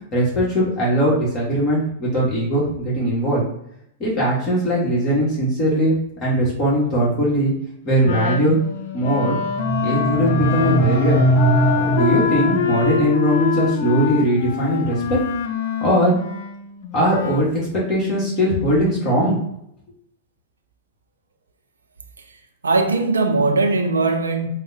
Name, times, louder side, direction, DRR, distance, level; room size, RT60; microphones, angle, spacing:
voice 1, 0.1-3.4 4.0-7.5 7.8-8.6 8.9-9.4 9.8-11.2 11.8-15.2 15.8-16.1 16.9-19.4, right 1 dB, 35° left, 1.2 m, -20 dB
Wind instrument woodwind instrument, 8.0-17.5, left 7 dB, 60° left, 0.3 m, -25 dB
Dark Hall, 9.2-13.2, right 1 dB, 5° left, 0.5 m, -21 dB
voice 2, 22.6-24.5, right 3 dB, 85° right, 0.4 m, -19 dB
3.4 x 2.0 x 2.7 m
hypercardioid pair, 100°, 0 cm